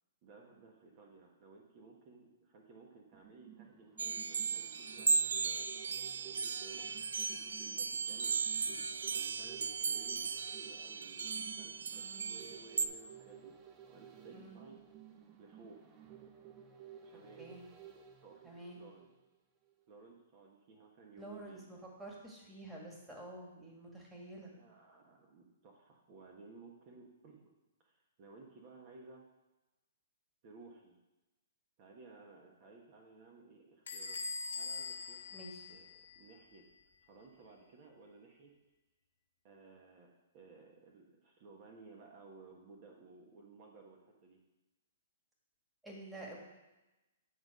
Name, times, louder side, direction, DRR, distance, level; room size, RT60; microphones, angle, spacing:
voice 1, 0.2-6.9 7.3-13.5 13.9-14.8 15.4-16.0 17.0-17.5 18.2-19.1 19.9-21.7 24.4-27.5 27.8-29.2 30.4-31.0 31.8-34.2 34.5-35.4 35.7-36.6 37.0-38.5 39.4-44.4, right 3 dB, 40° right, 0 dB, 1.3 m, -57 dB
sound 1, 3.1-19.4 19.7-19.8, right 9 dB, 25° right, 0.7 m, -55 dB
sound 2, 4.0-12.9, right 5 dB, 80° right, 0.4 m, -36 dB
voice 2, 11.9-12.4 14.3-14.6 17.4-17.6 18.4-18.8 21.2-24.5 35.3-35.6 45.8-46.4, right 1 dB, 5° right, -3 dB, 1.9 m, -49 dB
Bell / Squeak, 33.9-36.4, left 4 dB, 70° left, 1.6 m, -42 dB
8.9 x 4.0 x 6.3 m, 1.0 s
hypercardioid pair, 130°, 0 cm